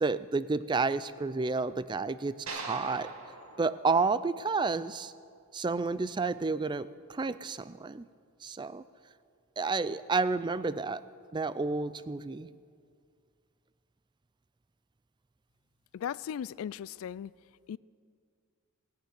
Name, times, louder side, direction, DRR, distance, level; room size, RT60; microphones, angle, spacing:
voice 1, 0.0-3.1 3.6-5.1 5.5-8.0 8.4-8.8 9.6-11.0 11.3-12.5, right 4 dB, 20° right, 0.4 m, -30 dB
sound 1, 2.5-4.8, right 3 dB, 90° right, 1.9 m, -43 dB
voice 2, 15.9-17.3 17.7-17.8, left 8 dB, 75° left, 0.3 m, -37 dB
18.5 x 6.9 x 9.3 m
head